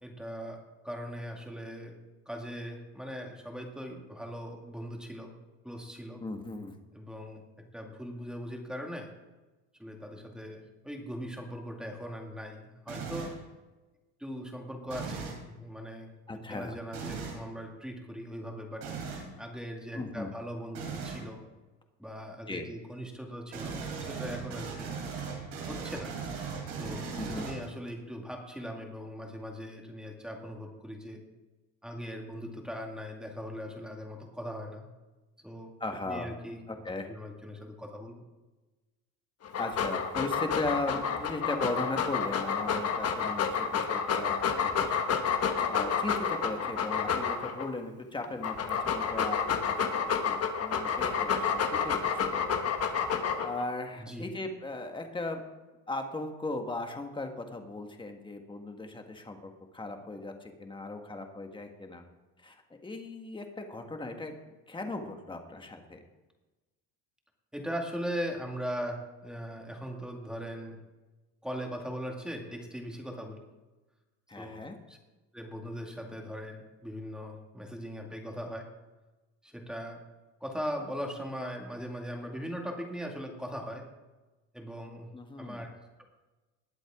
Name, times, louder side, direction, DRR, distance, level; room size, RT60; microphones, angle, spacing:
voice 1, 0.0-0.6 0.8-2.0 2.3-5.3 5.6-6.2 6.9-9.1 9.8-13.4 14.2-18.9 19.4-21.4 22.0-24.9 25.7-26.1 26.8-31.2 31.8-34.9 35.4-35.7 36.0-36.6 37.1-38.2 54.0-54.3 67.5-70.8 71.4-73.4 74.4-75.0 75.3-78.7 79.4-80.0 80.4-83.9 84.5-85.1 85.4-85.7, equal, ahead, 1 dB, 2.1 m, -40 dB
voice 2, 6.2-6.7 16.3-16.7 19.9-20.3 22.5-22.6 27.1-27.5 35.8-36.3 36.7-37.1 39.6-45.0 45.7-52.5 53.4-55.4 55.9-62.0 62.4-64.3 64.7-66.0 74.3-74.8 85.1-85.6, left 2 dB, 15° left, 4 dB, 1.5 m, -37 dB
sound 1, 12.9-13.4 14.9-15.4 16.9-17.4 18.8-19.3 20.7-21.2 23.5-27.9, right 5 dB, 85° right, 4.2 m, -38 dB
Dog, 39.4-47.7 48.2-53.6, left 6 dB, 40° left, 1.4 m, -29 dB
20.5 x 7.9 x 3.7 m, 1.2 s
cardioid pair, 130°, 36 cm